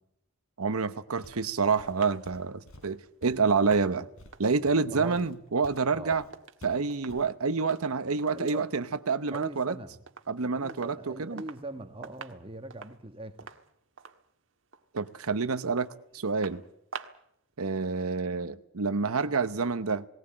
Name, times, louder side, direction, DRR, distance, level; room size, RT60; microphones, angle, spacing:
voice 1, 0.6-4.1 4.4-6.2 6.6-9.7 10.3-11.4 14.9-15.9 16.1-16.6 17.6-20.1, right 4 dB, 80° right, 0.9 m, -28 dB
Walk footsteps, 1.2-1.5 1.8-5.9 6.1-6.3 6.6-7.3, equal, 70° left, 3.8 m, -52 dB
sound 1, 1.2-6.6 6.9-7.2 7.5-8.7 8.9-9.8 10.1-10.3 10.7-11.7 12.0-17.3 17.6-17.7, right 5 dB, 60° right, 1.5 m, -48 dB
voice 2, 5.9-6.3 8.3-8.7 9.3-10.0 10.6-13.5, right 2 dB, 25° right, 1.6 m, -41 dB
19.0 x 19.0 x 8.8 m
head